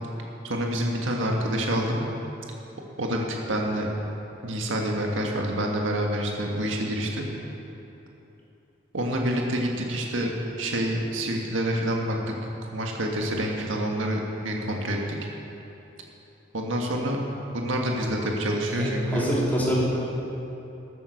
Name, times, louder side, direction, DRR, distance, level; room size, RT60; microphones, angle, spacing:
voice 1, 0.4-2.1 3.0-3.9 4.4-7.3 8.9-10.3 10.6-12.3 12.7-15.2 16.5-17.2 17.5-19.2, right 1 dB, 90° right, 0 dB, 1.7 m, -27 dB
voice 2, 18.7-19.8, equal, 10° left, -7 dB, 3.2 m, -25 dB
13.5 x 9.2 x 6.5 m, 3.0 s
head